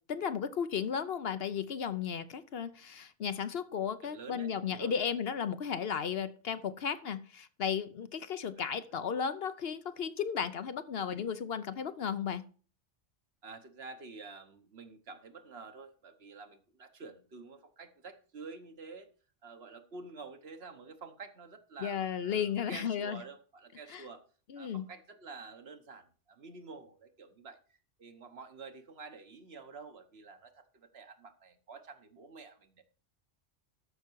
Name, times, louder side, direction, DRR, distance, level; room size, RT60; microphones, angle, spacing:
voice 1, 0.1-12.4 21.8-23.2 23.9-24.0 24.5-24.9, left 7 dB, 60° left, 12 dB, 0.9 m, -34 dB
voice 2, 4.0-4.9 13.4-19.1 19.4-24.2 24.5-32.8, right 4 dB, 60° right, 8 dB, 1.4 m, -49 dB
13.5 x 5.9 x 4.5 m, 0.40 s
omnidirectional pair, 1.2 m